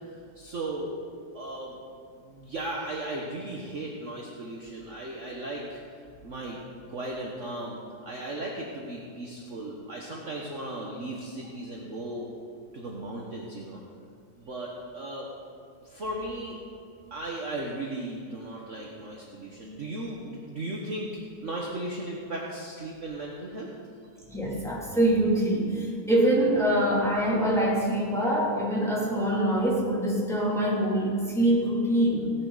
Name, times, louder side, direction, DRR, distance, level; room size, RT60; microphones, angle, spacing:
voice 1, 0.1-0.9 1.3-1.8 2.2-5.8 6.2-6.6 6.9-12.3 12.7-13.8 14.4-15.3 15.8-16.6 17.1-21.1 21.4-23.7, right 1 dB, 45° right, -3 dB, 1.5 m, -36 dB
voice 2, 24.3-32.3, right 1 dB, ahead, -6 dB, 2.9 m, -24 dB
17.5 x 10.5 x 4.1 m, 2.3 s
omnidirectional pair, 2.0 m